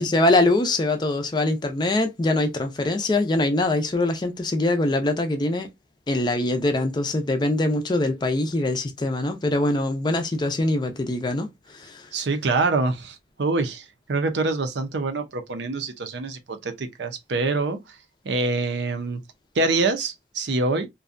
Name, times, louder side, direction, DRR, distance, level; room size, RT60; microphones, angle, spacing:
voice 1, 0.0-5.7 6.1-12.1, left 2 dB, 25° left, 0.4 m, -23 dB
voice 2, 12.1-17.8 18.2-19.2 19.6-20.9, right 3 dB, 75° right, 0.5 m, -25 dB
2.6 x 2.2 x 2.4 m
head